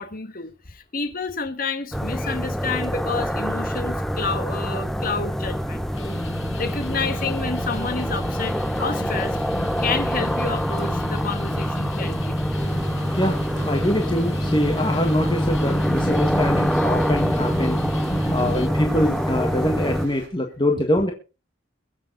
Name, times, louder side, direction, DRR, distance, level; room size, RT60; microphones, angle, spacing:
voice 1, 0.0-5.9 6.6-9.4 9.8-12.4 18.2-18.3, left 4 dB, 50° left, 1.7 m, -29 dB
sound 1, 1.9-20.1, equal, ahead, 0.7 m, -25 dB
sound 2, 5.9-18.7, left 2 dB, 75° left, 2.1 m, -36 dB
sound 3, 12.5-20.3, right 2 dB, 60° right, 4.8 m, -43 dB
voice 2, 13.2-17.8 18.3-21.1, left 1 dB, 25° left, 1.6 m, -24 dB
22.5 x 7.5 x 4.0 m
head